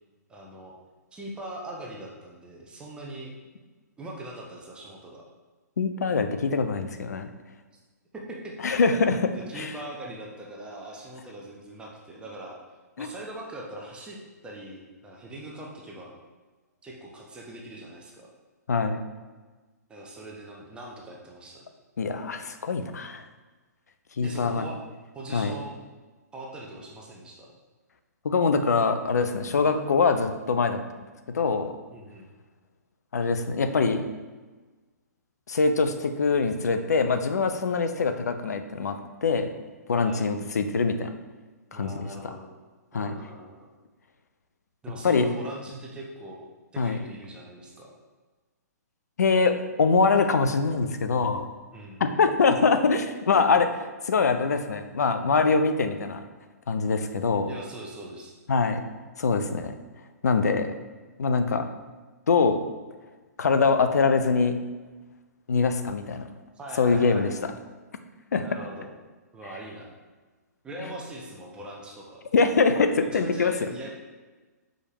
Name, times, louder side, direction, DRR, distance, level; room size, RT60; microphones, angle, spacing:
voice 1, 0.3-0.7 1.1-3.3 4.0-5.2 8.1-8.9 9.3-12.6 13.0-14.2 14.4-16.1 16.8-18.3 19.9-21.6 24.2-24.8 25.1-25.7 26.3-27.5 31.9-32.3 40.0-40.2 41.7-42.5 42.9-43.7 44.8-46.5 46.7-47.9 51.7-52.0 57.5-58.3 66.5-67.5 68.4-68.9 69.3-70.0 70.6-72.2 73.0-73.9, right 1 dB, 10° right, -2 dB, 0.9 m, -41 dB
voice 2, 5.8-7.3 8.6-9.7 13.0-13.1 18.7-19.0 22.0-23.2 24.2-24.6 25.3-25.5 28.2-30.8 31.3-31.7 33.1-34.0 35.5-39.5 39.9-41.1 41.7-42.3 42.9-43.1 45.0-45.3 46.8-47.0 49.2-51.5 52.0-53.7 54.0-56.2 56.7-57.5 58.5-58.8 59.2-59.7 60.2-60.7 61.2-61.7 62.3-62.6 63.4-64.6 65.5-66.3 66.8-67.3 68.3-68.5 70.8-70.9 72.3-73.7, left 4 dB, 65° left, 8 dB, 0.6 m, -23 dB
6.4 x 5.1 x 2.9 m, 1.3 s
figure-of-eight pair, 120°, 9 cm